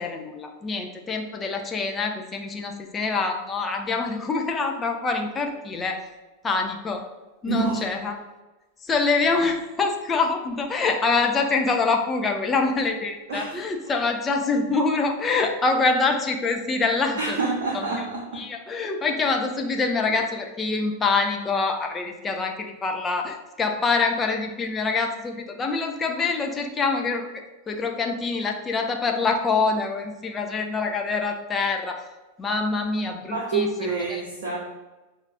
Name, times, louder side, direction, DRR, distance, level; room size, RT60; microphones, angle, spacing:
voice 1, 0.0-6.0 6.4-7.0 7.4-8.2 8.8-17.4 17.7-18.1 18.3-32.0 32.4-34.2, left 4 dB, 20° left, 3 dB, 0.5 m, -25 dB
voice 2, 7.5-7.8 13.3-13.6 17.2-18.4 33.3-34.7, right 4 dB, 60° right, -3 dB, 0.7 m, -27 dB
6.2 x 2.4 x 2.7 m, 1.1 s
figure-of-eight pair, 90°, 0 cm